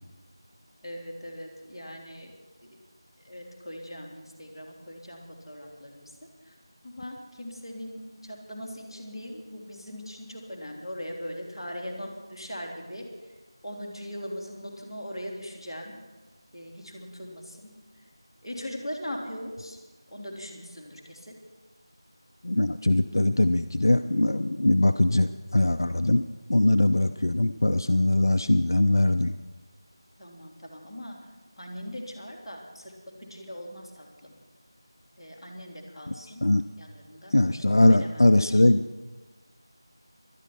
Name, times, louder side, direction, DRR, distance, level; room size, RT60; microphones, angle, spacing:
voice 1, 0.8-2.3 3.2-6.5 6.8-13.0 13.6-15.9 16.5-17.7 18.4-19.8 20.1-21.3 30.2-31.2 31.6-32.9 33.2-34.4 35.2-36.4 36.8-37.3 37.6-38.6, equal, ahead, -16 dB, 2.2 m, -40 dB
voice 2, 22.4-26.2 26.5-29.3 36.1-36.2 36.4-36.6 37.3-38.8, left 1 dB, 50° left, 8 dB, 0.6 m, -21 dB
18.0 x 12.5 x 5.7 m, 1.2 s
figure-of-eight pair, 170°, 3 cm